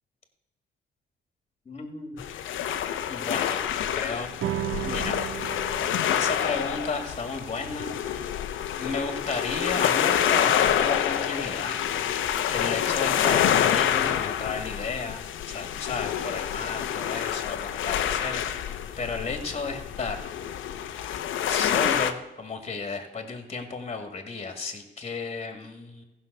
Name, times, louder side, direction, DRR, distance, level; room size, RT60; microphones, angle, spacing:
voice 1, 1.7-2.4 3.1-4.3 4.8-5.3 6.1-7.9 8.8-11.8 12.5-20.2 20.9-21.1 21.5-26.0, left 4 dB, 30° left, 7 dB, 2.0 m, -33 dB
sound 1, 2.2-22.1, left 10 dB, 80° left, 0.8 m, -27 dB
sound 2, 4.4-11.1, right 11 dB, 70° right, 0.5 m, -37 dB
15.0 x 5.6 x 6.7 m, 1.0 s
cardioid pair, 90°, 20 cm